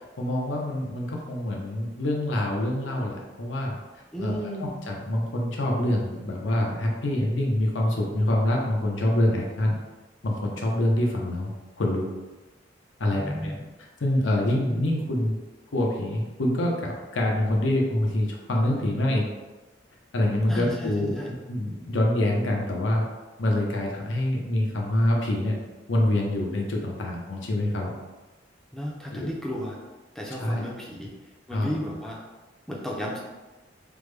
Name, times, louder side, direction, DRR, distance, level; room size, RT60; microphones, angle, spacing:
voice 1, 0.2-3.8 4.2-9.7 10.2-11.5 11.8-12.1 13.0-13.5 14.0-15.4 15.7-19.3 20.1-23.0 23.4-25.6 25.9-27.9 29.1-29.3 30.4-30.6 31.5-31.7, left 1 dB, 75° left, -1 dB, 0.7 m, -25 dB
voice 2, 4.1-4.7 13.1-13.6 20.5-20.9 21.2-21.3 28.7-29.8 30.2-31.1 31.5-32.2 32.7-33.2, equal, ahead, -3 dB, 0.4 m, -33 dB
3.4 x 2.1 x 3.2 m, 1.2 s
head